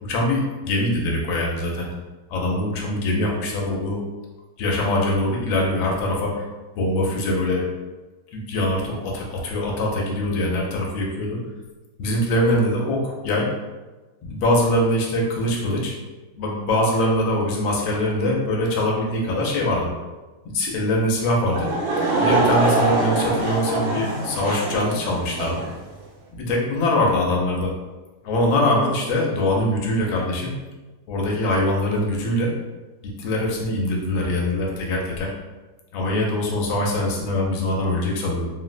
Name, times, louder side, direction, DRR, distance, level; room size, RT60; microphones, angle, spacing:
voice 1, 0.0-1.9 2.3-4.0 4.6-6.5 6.8-7.7 8.3-11.4 12.0-13.5 14.2-15.9 16.4-19.9 20.4-21.7 22.2-25.6 26.3-27.7 28.2-30.6 31.1-32.5 33.0-35.3 35.9-38.5, left 1 dB, 90° left, -1 dB, 1.4 m, -23 dB
Laughter / Crowd, 21.5-25.7, right 2 dB, 85° right, 1.5 m, -23 dB
3.7 x 2.0 x 2.4 m, 1.2 s
omnidirectional pair, 2.1 m